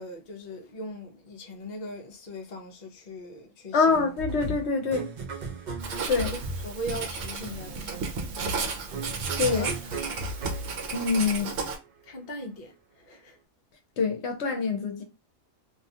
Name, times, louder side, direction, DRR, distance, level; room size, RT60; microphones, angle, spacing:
voice 1, 0.0-3.9 6.3-8.0 9.5-10.2 12.0-13.4, equal, 45° left, 0.6 m, -39 dB
voice 2, 3.7-5.1 6.1-6.3 9.4-9.7 10.9-11.5 14.0-15.0, left 4 dB, 65° left, 0.9 m, -25 dB
sound 1, 3.9-11.5, right 2 dB, 50° right, 0.5 m, -37 dB
Writing, 5.8-11.8, right 4 dB, 80° right, 1.0 m, -34 dB
2.6 x 2.3 x 2.7 m
omnidirectional pair, 1.3 m